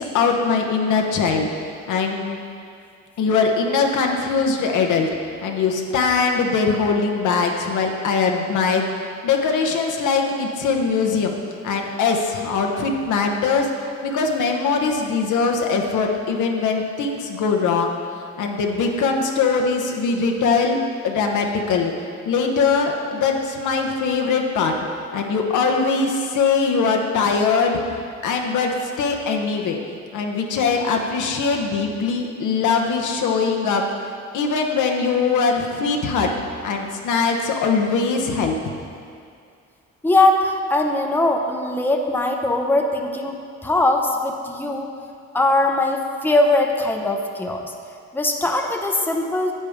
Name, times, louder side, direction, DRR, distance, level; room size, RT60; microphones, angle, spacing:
voice 1, 0.0-1.5 1.9-2.4 3.2-5.1 5.4-11.3 11.6-13.7 14.0-17.9 18.4-20.8 21.0-21.9 22.3-24.8 25.1-27.8 28.2-29.8 30.1-33.8 34.3-36.3 36.6-38.6, left 5 dB, 80° left, 2 dB, 1.1 m, -21 dB
voice 2, 40.0-44.9 45.3-47.7 48.1-49.5, left 2 dB, 5° left, 2 dB, 0.8 m, -20 dB
9.9 x 8.5 x 3.6 m, 2.4 s
cardioid pair, 90°, 30 cm